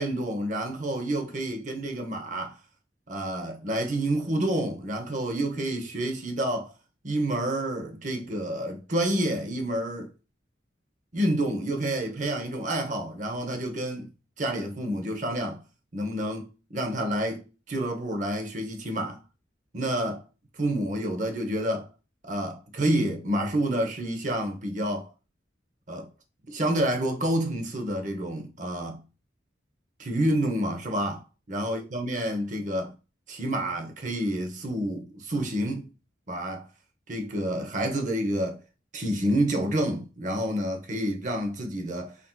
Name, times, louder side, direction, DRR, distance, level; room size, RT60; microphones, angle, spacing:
voice 1, 0.0-2.6 3.1-6.7 7.0-10.1 11.1-14.1 14.4-15.6 15.9-19.2 19.7-20.2 20.6-21.9 22.2-25.1 25.9-26.1 26.5-29.0 30.0-33.0 33.3-35.9 36.3-36.7 37.1-38.6 38.9-42.2, right 1 dB, 40° right, 0.7 m, -29 dB
5.9 x 2.7 x 2.2 m
head